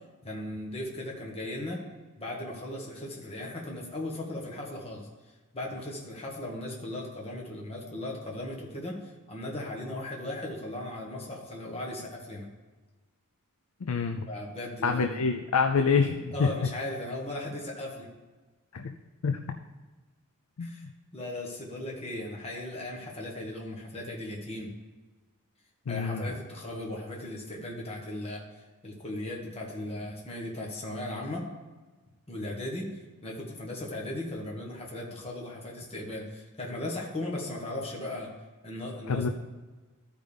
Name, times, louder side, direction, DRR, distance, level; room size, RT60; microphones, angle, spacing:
voice 1, 0.2-1.8 2.2-5.1 5.5-12.5 14.3-15.2 16.3-18.1 20.6-20.9 21.1-24.7 25.9-28.4 28.8-31.4 32.3-32.9 33.2-38.3 38.6-39.3, left 1 dB, 30° left, -2 dB, 1.4 m, -37 dB
voice 2, 13.8-14.3 14.8-16.5 18.7-18.9 19.2-19.4 20.6-20.7 25.9-26.2 39.1-39.3, left 5 dB, 85° left, 5 dB, 0.5 m, -26 dB
13.5 x 5.2 x 3.4 m, 1.3 s
head